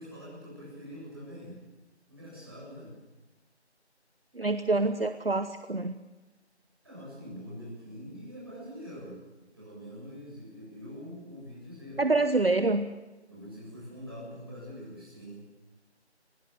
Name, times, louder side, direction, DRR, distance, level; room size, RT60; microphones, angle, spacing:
voice 1, 0.0-1.6 2.1-2.9 6.8-9.2 9.5-12.4 13.3-15.5, equal, 20° right, -6 dB, 7.6 m, -44 dB
voice 2, 4.3-6.0 12.0-12.9, right 2 dB, 55° right, 10 dB, 1.0 m, -26 dB
22.0 x 17.0 x 7.8 m, 1.1 s
figure-of-eight pair, 180°, 34 cm